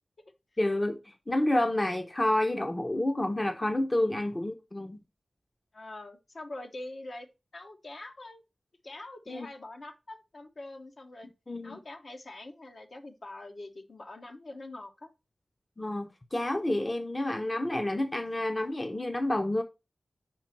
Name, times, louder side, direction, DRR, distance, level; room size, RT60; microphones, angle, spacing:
voice 1, 0.6-5.0 9.3-9.5 11.5-11.8 15.8-19.6, left 1 dB, 30° left, 0.8 m, -29 dB
voice 2, 5.7-7.3 7.5-8.4 8.8-11.3 11.6-15.1, left 2 dB, 60° left, 1.1 m, -44 dB
5.2 x 4.4 x 5.9 m
cardioid pair, 60°, 0 cm